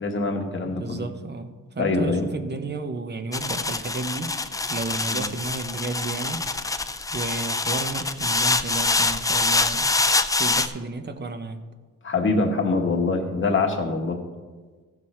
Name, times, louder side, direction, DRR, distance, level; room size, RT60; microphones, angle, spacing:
voice 1, 0.0-1.0 1.8-2.3 5.1-5.2 12.0-14.2, left 3 dB, 35° left, 3 dB, 1.3 m, -24 dB
voice 2, 0.6-4.4 4.7-6.4 7.1-9.9 10.3-11.6, right 3 dB, 30° right, 8 dB, 0.8 m, -32 dB
sound 1, 3.3-10.7, left 3 dB, 10° left, 0.3 m, -25 dB
15.5 x 6.1 x 4.3 m, 1.4 s
wide cardioid pair, 130°, 32 cm